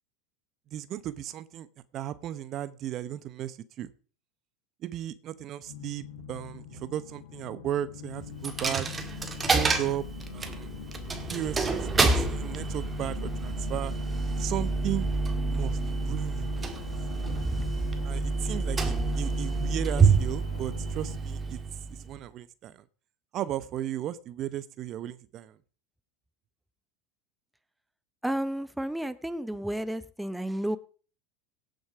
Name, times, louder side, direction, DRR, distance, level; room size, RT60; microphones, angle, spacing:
voice 1, 0.7-1.7 1.9-3.9 4.8-8.9 9.5-10.1 10.3-10.7 11.3-13.9 14.4-15.1 15.5-16.5 18.0-21.6 22.1-22.7 23.3-25.5, right 12 dB, 45° right, 16 dB, 0.9 m, -35 dB
sound 1, 5.7-21.2, left 8 dB, 90° left, 1.5 m, -43 dB
Coin (dropping), 8.4-22.2, right 4 dB, 20° right, 1.9 m, -28 dB
voice 2, 28.2-30.8, right 1 dB, 5° right, 13 dB, 0.7 m, -32 dB
17.0 x 6.5 x 4.9 m, 0.40 s
hypercardioid pair, 100°, 0 cm